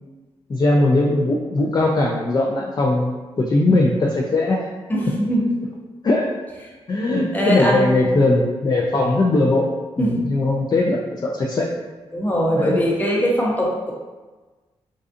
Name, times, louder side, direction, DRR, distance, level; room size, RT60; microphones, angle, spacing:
voice 1, 0.5-4.7 6.0-6.4 6.9-9.7 10.0-11.7 12.6-12.8, left 2 dB, 35° left, -2 dB, 0.4 m, -19 dB
voice 2, 4.9-5.5 7.3-8.1 10.0-10.2 12.1-13.9, equal, 15° left, -4 dB, 0.8 m, -21 dB
2.5 x 2.3 x 2.5 m, 1.3 s
supercardioid pair, 40°, 12 cm